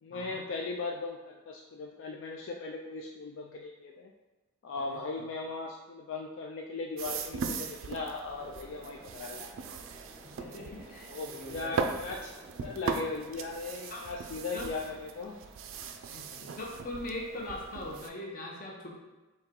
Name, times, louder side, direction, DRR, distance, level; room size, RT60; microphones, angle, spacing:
voice 1, 0.0-4.1 4.6-9.5 11.1-12.3 12.6-15.4, left 3 dB, 65° left, 0 dB, 0.3 m, -38 dB
voice 2, 4.8-5.2 10.4-11.7 13.9-14.1 14.5-14.7 16.1-19.0, left 1 dB, 40° left, -1 dB, 0.7 m, -41 dB
sound 1, 7.0-18.1, right 5 dB, 75° right, 0.4 m, -39 dB
sound 2, 8.3-13.5, equal, 15° right, 0.7 m, -55 dB
4.4 x 2.8 x 3.6 m, 1.2 s
head